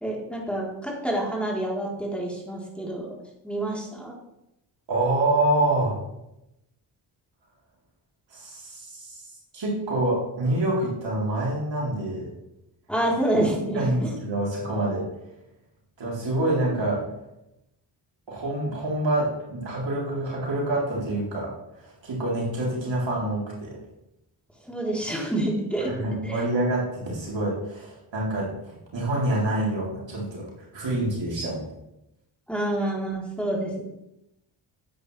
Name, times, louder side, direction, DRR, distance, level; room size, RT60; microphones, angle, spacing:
voice 1, 0.0-3.1 3.4-4.1 12.9-14.1 24.7-25.9 26.2-26.4 32.5-33.8, right 1 dB, ahead, -4 dB, 3.6 m, -27 dB
voice 2, 4.9-6.0 8.3-9.2 9.5-12.3 13.7-15.0 16.0-17.0 18.3-21.5 21.8-23.8 25.9-30.5 30.7-31.7, right 1 dB, 65° right, -5 dB, 3.7 m, -26 dB
10.0 x 8.1 x 3.3 m, 0.89 s
supercardioid pair, 50°, 48 cm